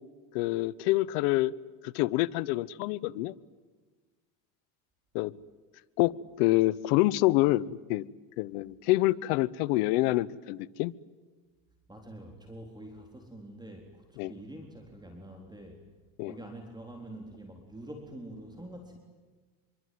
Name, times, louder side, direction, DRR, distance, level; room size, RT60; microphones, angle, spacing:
voice 1, 0.3-1.5 1.8-3.3 5.1-5.3 6.0-6.1 6.4-8.0 8.4-10.9 14.2-14.3 16.2-16.3, left 18 dB, 85° left, 1.0 m, -26 dB
voice 2, 11.9-15.9 16.2-19.0, right 1 dB, 10° right, 4.1 m, -46 dB
26.0 x 24.0 x 9.5 m
supercardioid pair, 105°, 46 cm